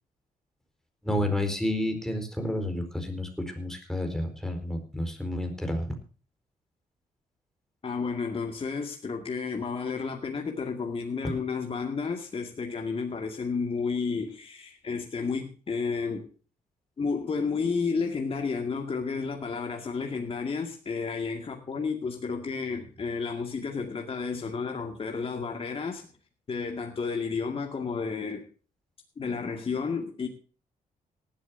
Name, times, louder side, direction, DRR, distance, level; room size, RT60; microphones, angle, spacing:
voice 1, 1.0-5.9, left 1 dB, 5° left, 5 dB, 4.6 m, -30 dB
voice 2, 7.8-16.3 17.0-26.1 26.5-28.4 29.2-30.3, left 5 dB, 40° left, 2 dB, 2.2 m, -31 dB
18.5 x 12.5 x 2.8 m, 0.38 s
cardioid pair, 95°, 15 cm